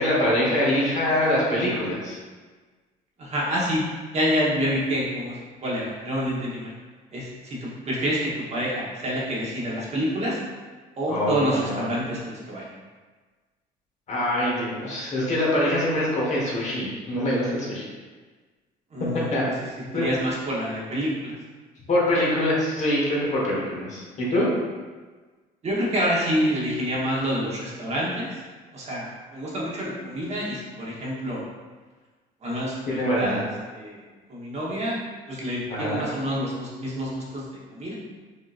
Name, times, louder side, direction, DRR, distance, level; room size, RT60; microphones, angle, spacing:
voice 1, 0.0-2.2 11.1-11.8 14.1-17.9 19.3-19.4 19.9-20.1 21.9-24.5 32.9-33.4 35.7-36.0, left 1 dB, 45° left, -5 dB, 1.2 m, -24 dB
voice 2, 3.2-3.8 4.1-6.7 7.1-10.4 11.0-12.7 18.9-19.6 19.9-21.3 25.6-28.4 28.7-31.4 32.4-33.4 33.7-34.0 34.3-35.0 35.3-37.9, equal, 40° right, -5 dB, 1.1 m, -27 dB
5.1 x 2.8 x 2.5 m, 1.4 s
cardioid pair, 110°, 17 cm